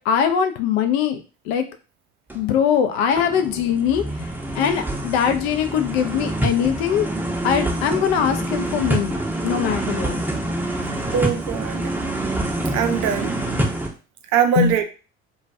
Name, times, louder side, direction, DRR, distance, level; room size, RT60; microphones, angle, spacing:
voice 1, 0.0-1.7 2.3-7.1 7.4-10.2 14.5-14.8, left 8 dB, 70° left, 7 dB, 0.5 m, -22 dB
sound 1, 2.3-2.5 2.9-13.9, right 1 dB, 5° right, 0.6 m, -26 dB
voice 2, 11.1-11.9 12.7-13.3 14.3-14.8, right 8 dB, 55° right, 6 dB, 0.5 m, -21 dB
2.2 x 2.2 x 2.6 m, 0.34 s
hypercardioid pair, 60°, 33 cm